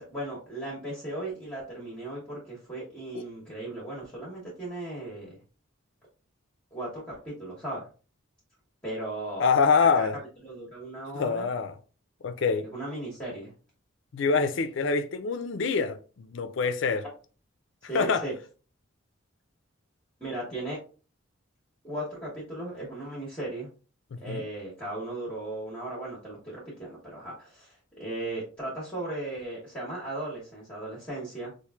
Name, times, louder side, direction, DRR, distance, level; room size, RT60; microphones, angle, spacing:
voice 1, 0.0-5.4 6.7-7.9 8.8-9.4 10.0-10.1 10.4-11.5 12.7-13.5 17.9-18.3 20.2-20.8 21.8-23.7 24.2-31.5, right 1 dB, 10° left, 0.9 m, -36 dB
voice 2, 9.4-10.2 11.1-11.7 12.2-12.7 14.1-17.0 17.9-18.2 24.3-24.4, left 5 dB, 60° left, 0.4 m, -25 dB
4.4 x 2.5 x 2.3 m
head